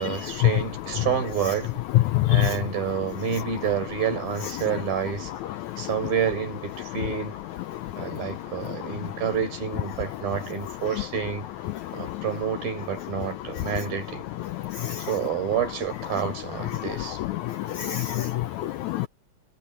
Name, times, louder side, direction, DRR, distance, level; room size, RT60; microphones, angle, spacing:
voice 1, 0.0-1.7 2.3-5.3 5.8-7.4 8.0-11.5 11.9-14.2 15.0-17.2, right 8 dB, 90° right, 6.8 m, -29 dB
voice 2, 2.1-2.5 14.8-15.0 17.4-19.1, left 15 dB, 85° left, 1.7 m, -25 dB
omnidirectional pair, 4.0 m